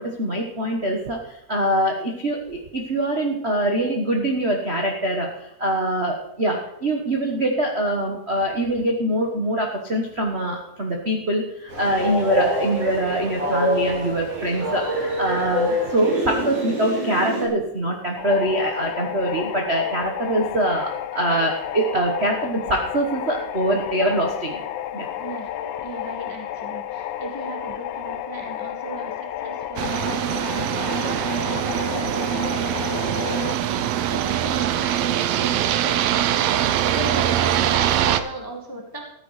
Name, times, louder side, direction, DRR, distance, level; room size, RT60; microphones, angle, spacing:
voice 1, 0.0-24.6 24.9-25.1, right 1 dB, 70° right, 1 dB, 0.6 m, -24 dB
Train, 11.7-17.5, equal, 50° right, 4.4 m, -26 dB
sound 1, 18.2-33.5, left 11 dB, 80° left, 1.4 m, -32 dB
voice 2, 25.2-25.5 25.8-30.2 30.7-39.0, right 2 dB, 20° left, 2 dB, 0.5 m, -37 dB
sound 2, 29.8-38.2, right 11 dB, 85° right, 1.3 m, -23 dB
14.0 x 9.7 x 5.0 m, 0.81 s
omnidirectional pair, 3.6 m